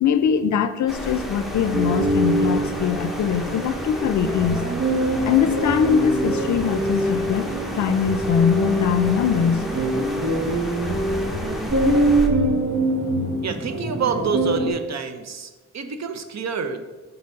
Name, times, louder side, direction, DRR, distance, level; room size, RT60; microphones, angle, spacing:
voice 1, 0.0-4.7 5.2-9.7, left 7 dB, 70° left, 11 dB, 0.4 m, -22 dB
sound 1, 0.9-12.3, left 1 dB, ahead, 0.8 m, -32 dB
sound 2, 1.6-14.7, right 1 dB, 75° right, 1.2 m, -24 dB
voice 2, 13.4-16.9, right 5 dB, 60° right, 8 dB, 0.7 m, -27 dB
5.4 x 4.4 x 5.2 m, 1.2 s
wide cardioid pair, 100°, 30 cm